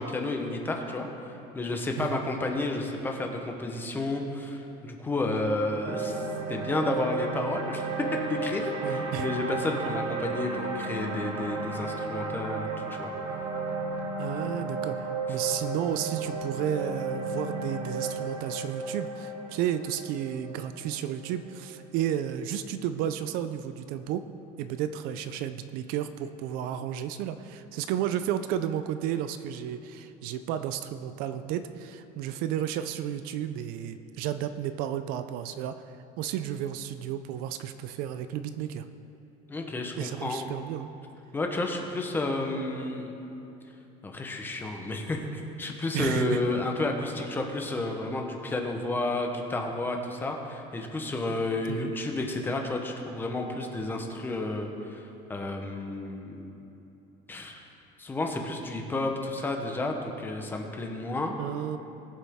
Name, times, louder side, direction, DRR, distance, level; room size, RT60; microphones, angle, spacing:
voice 1, 0.0-7.9 8.3-13.1 39.5-40.5 41.3-43.1 44.0-55.0 55.3-56.6 57.3-57.6 58.0-61.3, left 2 dB, 10° left, 2 dB, 0.9 m, -31 dB
sound 1, 5.8-22.1, right 3 dB, 35° right, 1.2 m, -34 dB
voice 2, 8.8-9.3 9.9-10.0 14.2-24.3 24.6-35.8 36.2-38.8 40.0-40.9 45.9-46.4 51.7-51.9 61.4-61.8, right 10 dB, 60° right, 10 dB, 0.5 m, -32 dB
20.0 x 7.3 x 3.6 m, 2.9 s
cardioid pair, 170°, 17 cm